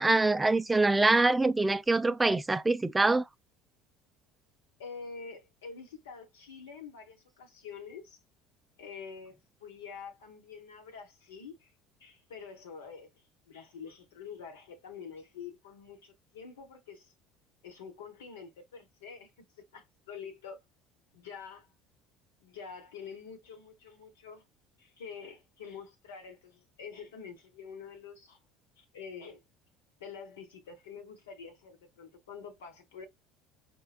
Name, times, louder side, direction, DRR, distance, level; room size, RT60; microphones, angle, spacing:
voice 1, 0.0-3.2, right 2 dB, 15° right, 0.3 m, -24 dB
voice 2, 4.8-8.2 8.8-11.7 12.0-13.1 13.5-17.1 17.6-20.6 21.1-21.7 22.4-24.5 24.8-28.4 28.8-29.4 30.0-33.1, left 6 dB, 85° left, 0.9 m, -46 dB
4.5 x 2.1 x 2.4 m
hypercardioid pair, 70°, 0 cm